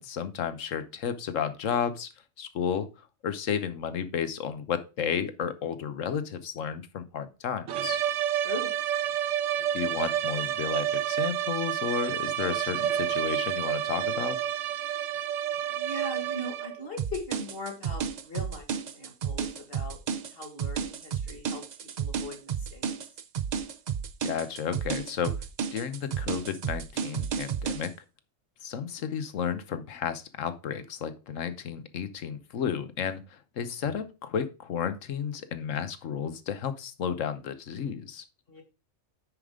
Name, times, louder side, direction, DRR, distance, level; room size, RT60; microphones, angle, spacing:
voice 1, 0.0-2.1 2.4-8.0 9.7-14.4 24.2-25.3 25.7-27.9 28.6-38.2, left 7 dB, 85° left, 11 dB, 1.3 m, -32 dB
sound 1, 7.7-16.9, right 11 dB, 75° right, 0.9 m, -29 dB
voice 2, 8.3-8.7 15.7-18.7 18.9-20.0 20.3-21.6 22.0-22.9 29.0-29.1 38.5-38.6, left 1 dB, 50° left, 4 dB, 2.1 m, -40 dB
sound 2, 17.0-27.9, right 7 dB, 50° right, 0.5 m, -32 dB
9.7 x 5.1 x 3.6 m, 0.30 s
omnidirectional pair, 1.3 m